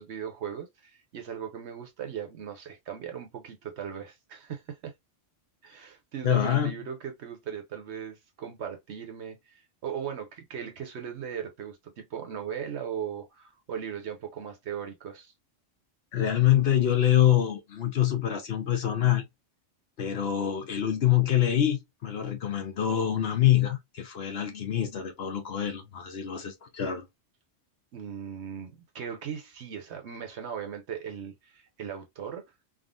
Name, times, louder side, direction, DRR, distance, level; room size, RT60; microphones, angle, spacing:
voice 1, 0.0-4.9 5.6-15.3 27.9-32.5, right 8 dB, 65° right, 1.0 m, -38 dB
voice 2, 6.2-6.7 16.1-19.3 20.0-27.1, left 11 dB, 60° left, 0.8 m, -25 dB
3.6 x 2.1 x 2.3 m
omnidirectional pair, 1.3 m